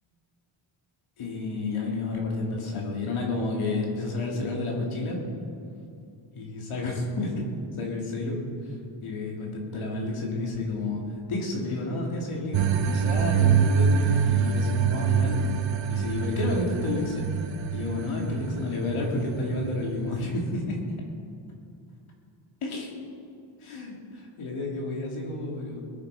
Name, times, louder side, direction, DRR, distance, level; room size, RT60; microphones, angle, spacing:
voice 1, 1.2-5.2 6.3-7.5 7.8-11.0 11.3-15.5 15.9-17.3 17.7-20.8 22.6-23.0 23.6-25.9, left 2 dB, 80° left, -1 dB, 3.1 m, -30 dB
sound 1, 12.5-20.6, right 7 dB, 65° right, 0.9 m, -26 dB
21.0 x 9.5 x 5.0 m, 2.6 s
cardioid pair, 120°, 49 cm